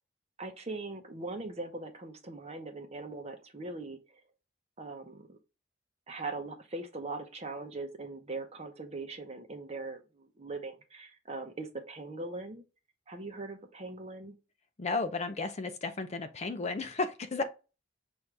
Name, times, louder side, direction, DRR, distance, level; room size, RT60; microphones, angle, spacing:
voice 1, 0.4-4.0 4.8-5.4 6.1-12.6 13.1-14.4, right 3 dB, 35° right, 0.9 m, -41 dB
voice 2, 14.8-17.4, left 3 dB, 35° left, 0.5 m, -33 dB
6.1 x 2.6 x 3.3 m
head